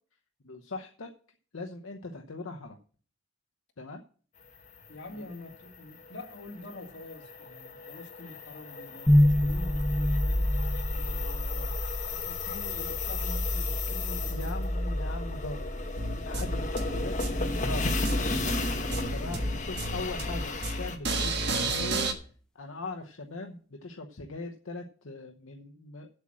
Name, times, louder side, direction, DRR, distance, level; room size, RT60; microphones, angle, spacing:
voice 1, 0.4-1.1 1.5-2.8 3.8-4.0 5.1-5.3 14.3-15.7 16.2-17.2 17.5-18.0 18.3-18.6 19.1-22.1 22.5-26.1, left 3 dB, 75° left, 0.9 m, -40 dB
sound 1, 4.5-21.0, left 3 dB, 35° left, 1.5 m, -36 dB
voice 2, 4.9-10.5 10.9-11.8 12.1-15.0 15.3-15.4 16.9-17.2 18.0-18.8, left 2 dB, 55° left, 2.4 m, -45 dB
sound 2, 9.1-21.1, equal, 5° left, 0.6 m, -29 dB
sound 3, 16.0-22.1, right 2 dB, 55° right, 1.4 m, -31 dB
8.0 x 7.5 x 7.4 m
head